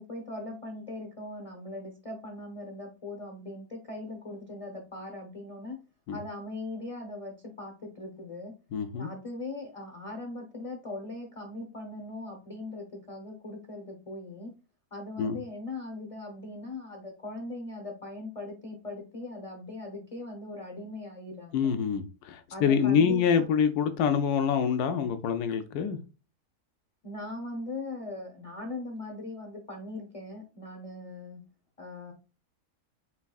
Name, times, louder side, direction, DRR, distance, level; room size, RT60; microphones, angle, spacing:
voice 1, 0.0-5.8 6.1-8.5 8.9-14.5 14.9-21.7 22.5-23.5 27.0-31.4 31.8-32.1, left 2 dB, 30° left, 0.7 m, -40 dB
voice 2, 8.7-9.1 15.2-15.4 21.5-26.0, left 7 dB, 85° left, 1.2 m, -26 dB
4.5 x 4.1 x 2.3 m
omnidirectional pair, 1.6 m